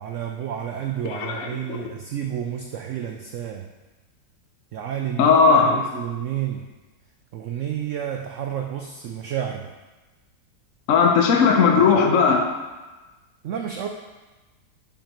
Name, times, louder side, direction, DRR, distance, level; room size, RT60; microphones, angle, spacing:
voice 1, 0.0-3.7 4.7-6.7 7.3-9.7 13.4-13.9, right 9 dB, 80° right, 4 dB, 0.6 m, -30 dB
voice 2, 1.0-1.9 5.2-5.8 10.9-12.5, left 5 dB, 60° left, 2 dB, 1.0 m, -18 dB
10.0 x 5.4 x 3.0 m, 1.2 s
omnidirectional pair, 1.8 m